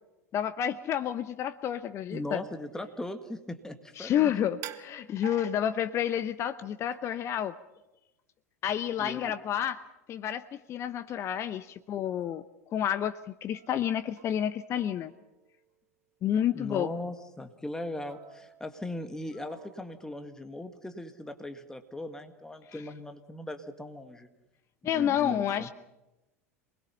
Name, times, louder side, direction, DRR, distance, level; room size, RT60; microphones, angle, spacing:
voice 1, 0.3-2.4 4.0-7.5 8.6-9.8 10.1-12.4 12.7-15.1 16.2-16.9 24.8-25.7, left 10 dB, 35° left, 12 dB, 0.8 m, -30 dB
voice 2, 2.1-4.3 9.0-9.3 16.5-24.3 24.9-25.7, left 1 dB, 5° left, 7 dB, 1.9 m, -39 dB
sound 1, 4.6-6.2 6.9-7.3 11.3-11.4 11.9-12.3 13.5-14.5 14.8-15.9 16.3-16.5 18.1-19.1 19.5-20.2, right 11 dB, 40° right, 1.4 m, -49 dB
27.5 x 21.0 x 5.6 m, 0.95 s
figure-of-eight pair, 85°, 8 cm